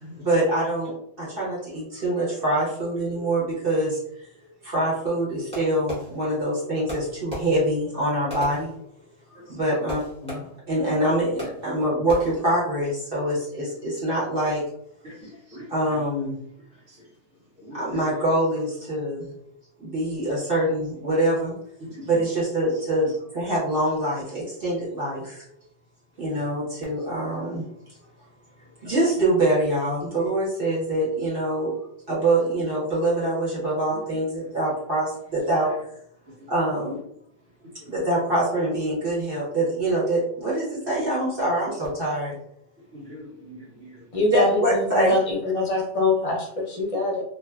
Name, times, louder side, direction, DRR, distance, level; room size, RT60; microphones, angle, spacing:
voice 1, 0.2-4.0 4.6-8.7 9.5-14.6 15.7-16.4 17.7-19.3 19.8-21.5 22.0-25.4 26.2-27.6 28.8-31.8 32.1-35.7 36.5-37.0 37.9-42.4 44.3-45.2, right 1 dB, 50° right, 1.0 m, -25 dB
Fireworks, 5.5-6.5 6.9-9.3 9.9-10.8 11.4-11.8 12.1-12.6, equal, 5° left, 1.0 m, -37 dB
voice 2, 15.0-16.0 16.9-17.0 17.6-18.0 21.8-22.1 33.9-34.0 36.9-37.0 42.9-44.0, equal, 90° right, 1.2 m, -42 dB
voice 3, 44.1-47.2, left 2 dB, 35° left, 0.6 m, -24 dB
2.6 x 2.4 x 2.2 m
omnidirectional pair, 1.2 m